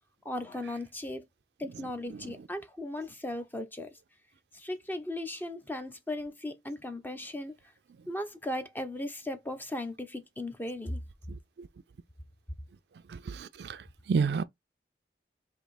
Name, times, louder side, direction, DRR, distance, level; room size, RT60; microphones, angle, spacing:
voice 1, 0.2-1.3 1.6-3.9 4.5-7.5 8.1-11.0, left 1 dB, 10° left, 0.6 m, -37 dB
voice 2, 11.3-11.7 13.3-13.8 14.1-14.4, right 5 dB, 70° right, 0.4 m, -30 dB
3.4 x 2.8 x 4.1 m
head